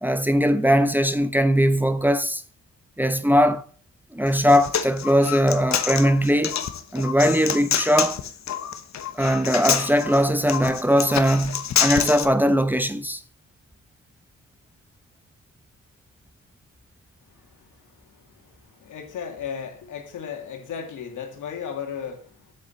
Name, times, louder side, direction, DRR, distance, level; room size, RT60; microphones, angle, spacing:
voice 1, 0.0-2.4 3.0-3.6 4.1-6.5 6.9-8.2 9.1-13.2, equal, 5° right, 0.9 m, -20 dB
Human voice, 4.3-12.2, left 9 dB, 65° left, 1.1 m, -27 dB
voice 2, 18.1-22.5, left 7 dB, 85° left, 2.4 m, -35 dB
8.1 x 7.3 x 7.1 m
cardioid pair, 80°, 30 cm